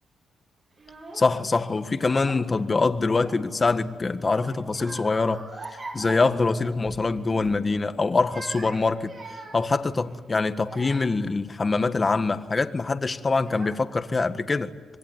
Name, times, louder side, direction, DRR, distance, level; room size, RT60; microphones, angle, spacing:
Child speech kid speaking / Crying sobbing, 0.8-1.3 1.9-2.6 2.9-3.7 4.2-7.1 7.4-7.6 8.1-11.3 11.9-12.3 13.0-13.1 13.4-14.1, right 3 dB, 45° right, 6.0 m, -43 dB
voice 1, 1.1-5.4 5.7-9.1 9.5-14.7, left 3 dB, 30° left, 1.6 m, -24 dB
26.0 x 23.0 x 9.5 m
cardioid pair, 95°, 0 cm